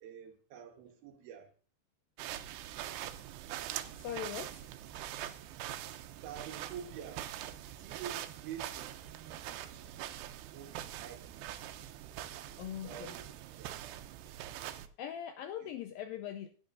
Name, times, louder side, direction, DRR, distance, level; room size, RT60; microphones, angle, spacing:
voice 1, 0.0-1.5 6.2-7.3 7.8-9.9 10.5-11.5 12.8-13.3 13.6-13.7 15.6-15.7, right 8 dB, 70° right, 2.9 m, -48 dB
sound 1, 2.2-14.9, right 12 dB, 90° right, 2.9 m, -43 dB
voice 2, 4.0-4.7 12.6-13.2 15.0-16.5, left 10 dB, 85° left, 2.1 m, -41 dB
16.5 x 10.0 x 2.6 m
omnidirectional pair, 4.7 m